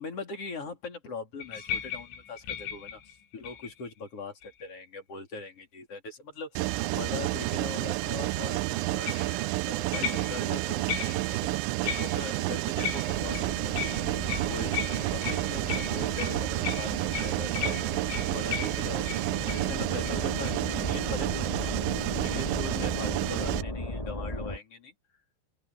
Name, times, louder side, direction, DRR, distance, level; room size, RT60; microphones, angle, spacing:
voice 1, 0.0-14.2 14.5-18.0 18.3-21.8 22.2-24.9, left 3 dB, 30° left, 3.9 m, -41 dB
sound 1, 1.4-3.9 4.4-4.8 9.1-9.3 9.9-10.5 10.9-11.4 11.9-12.4 12.8-19.7 20.0-20.2 20.4-20.6, left 8 dB, 75° left, 8.0 m, -37 dB
Mechanisms, 6.6-23.6, right 20 dB, 90° right, 2.6 m, -30 dB
sound 2, 13.1-24.6, left 1 dB, 15° left, 1.4 m, -37 dB
omnidirectional pair, 5.8 m